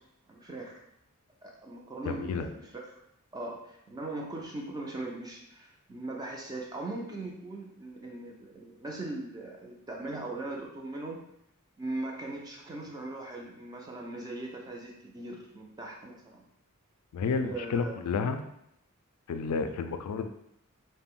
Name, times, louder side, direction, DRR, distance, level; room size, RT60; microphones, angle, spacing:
voice 1, 0.3-0.8 1.4-2.7 3.3-11.2 11.8-16.5 17.4-18.0, right 2 dB, 15° right, -1 dB, 0.3 m, -39 dB
voice 2, 2.1-2.5 17.1-18.4 19.3-20.3, left 5 dB, 80° left, 9 dB, 0.3 m, -31 dB
2.4 x 2.0 x 3.5 m, 0.76 s
head